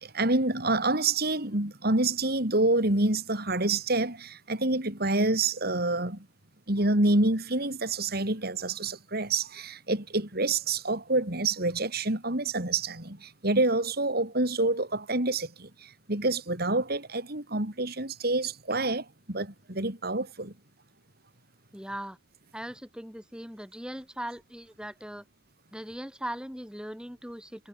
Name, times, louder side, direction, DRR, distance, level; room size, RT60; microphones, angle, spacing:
voice 1, 0.0-6.2 6.7-20.5, right 2 dB, 55° right, 4.3 m, -27 dB
voice 2, 21.7-22.2 22.5-25.2 25.7-27.7, equal, 5° right, 6.7 m, -39 dB
head